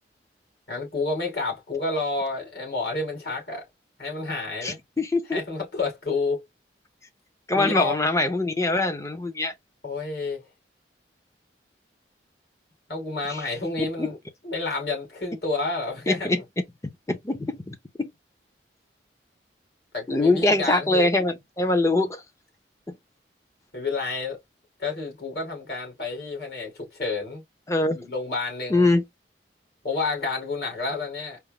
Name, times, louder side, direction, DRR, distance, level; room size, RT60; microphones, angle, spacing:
voice 1, 0.7-3.6 4.0-4.8 5.3-6.4 7.5-8.0 9.8-10.4 12.9-14.2 14.4-16.3 19.9-21.1 23.7-24.4 24.8-27.4 27.9-28.9 29.8-31.4, left 3 dB, 60° left, 2.6 m, -29 dB
voice 2, 4.6-5.4 7.5-9.5 13.3-13.4 13.8-14.1 16.1-16.4 17.1-18.1 20.1-22.2 22.9-23.0 27.7-28.0 28.7-29.0, left 2 dB, 15° left, 0.6 m, -23 dB
4.4 x 2.1 x 3.5 m
head